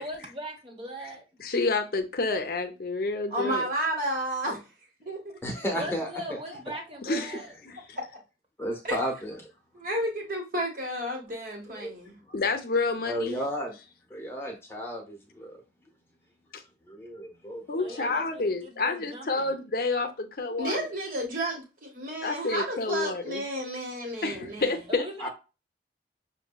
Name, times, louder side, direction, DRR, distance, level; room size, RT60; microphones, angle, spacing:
voice 1, 0.0-1.2 5.8-7.5 17.8-19.5 24.9-25.3, equal, 30° right, 0.9 m, -39 dB
voice 2, 1.4-3.7 7.0-7.4 7.7-8.0 12.3-13.4 16.5-16.6 17.7-20.9 22.2-23.4 24.2-25.3, left 3 dB, 55° left, 0.6 m, -29 dB
voice 3, 3.3-4.6 5.0-5.4 6.5-6.6 8.8-9.0 9.7-12.1 20.6-24.7, right 1 dB, 50° right, 1.4 m, -32 dB
voice 4, 5.4-6.4 8.6-9.4 11.7-11.9 13.0-13.7 14.1-15.6 16.9-18.1 25.2-25.3, equal, 15° left, 0.9 m, -33 dB
5.9 x 2.6 x 2.2 m
head